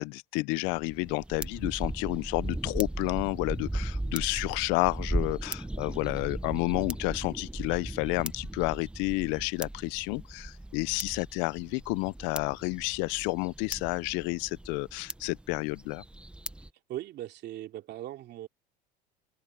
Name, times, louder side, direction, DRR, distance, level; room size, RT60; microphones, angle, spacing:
voice 1, 0.0-16.0, left 27 dB, 70° left, 0.4 m, -30 dB
sound 1, 0.6-16.7, right 1 dB, 5° right, 0.8 m, -37 dB
voice 2, 16.9-18.5, right 13 dB, 55° right, 2.9 m, -39 dB
supercardioid pair, 95°, 20 cm